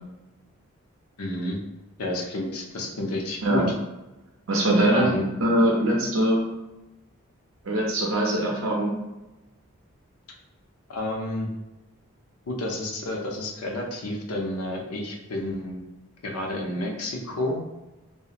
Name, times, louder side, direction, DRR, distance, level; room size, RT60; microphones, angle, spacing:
voice 1, 1.2-1.6 2.0-3.7 4.9-5.2 10.9-11.5 12.5-15.8 16.2-17.6, left 1 dB, 85° left, 0 dB, 0.5 m, -30 dB
voice 2, 3.4-3.7 4.5-6.4 7.6-9.0, right 1 dB, 60° right, -2 dB, 0.5 m, -22 dB
2.8 x 2.0 x 2.4 m, 1.0 s
head